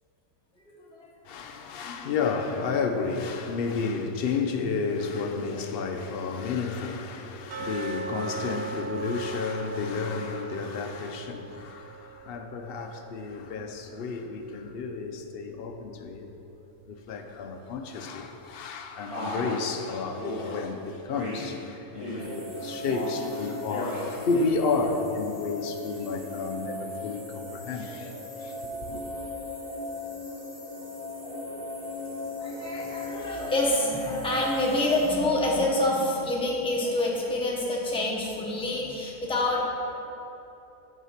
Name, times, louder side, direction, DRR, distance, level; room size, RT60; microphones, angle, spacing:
voice 1, 1.2-16.3 16.9-29.0, left 4 dB, 70° left, 0.5 m, -31 dB
sound 1, 7.5-14.4 14.6-14.7 15.2-15.3 15.9-16.0, right 5 dB, 75° right, 0.5 m, -40 dB
Male speech man speaking, 19.1-19.6 20.2-20.6 21.1-21.5 21.9-22.4 22.8-23.2 23.6-24.1, equal, 20° right, 2.1 m, -35 dB
sound 2, 22.2-35.1, left 1 dB, 45° right, 2.1 m, -37 dB
voice 2, 32.4-39.7, left 1 dB, 5° left, 0.8 m, -27 dB
8.3 x 4.9 x 5.8 m
omnidirectional pair, 1.6 m